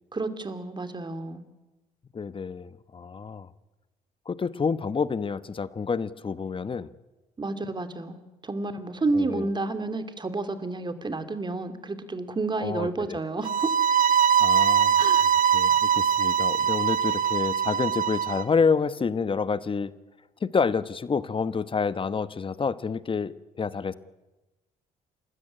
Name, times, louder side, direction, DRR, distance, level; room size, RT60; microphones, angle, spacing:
voice 1, 0.1-1.4 7.4-13.8 15.0-15.2, right 3 dB, 30° right, 10 dB, 2.6 m, -30 dB
voice 2, 2.1-3.5 4.3-6.9 9.1-9.5 12.6-13.2 14.4-15.0 15.5-19.9 20.4-23.9, left 5 dB, 35° left, 15 dB, 1.1 m, -28 dB
sound 1, 13.4-18.4, right 8 dB, 60° right, 1.2 m, -22 dB
29.0 x 13.0 x 9.9 m, 1.1 s
cardioid pair, 75°, 16 cm